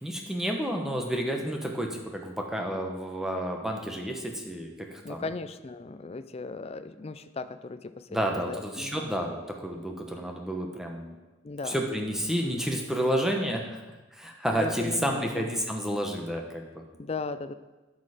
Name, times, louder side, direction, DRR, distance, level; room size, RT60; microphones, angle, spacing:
voice 1, 0.0-5.3 8.1-11.2 11.6-13.8 14.1-16.8, equal, ahead, 1 dB, 0.9 m, -30 dB
voice 2, 5.0-9.1 11.4-11.8 14.5-15.5 17.0-17.5, left 3 dB, 30° left, 12 dB, 0.4 m, -37 dB
11.5 x 6.5 x 4.9 m, 1.2 s
head